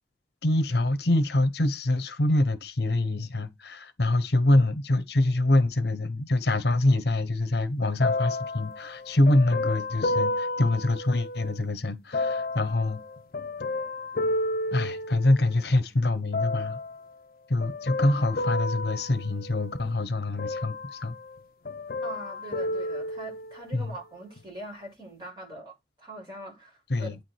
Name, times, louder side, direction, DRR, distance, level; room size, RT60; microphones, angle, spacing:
voice 1, 0.4-13.0 14.7-16.8 17.5-21.1 23.7-23.9 26.9-27.2, left 2 dB, 70° left, 1.1 m, -25 dB
sound 1, 8.0-11.6 12.1-15.6 16.3-17.0 17.6-19.9 20.4-21.4 21.6-23.7 24.4-24.5, left 2 dB, 55° left, 0.6 m, -31 dB
voice 2, 22.0-27.1, right 1 dB, 25° right, 6.6 m, -42 dB
9.2 x 4.9 x 4.7 m
head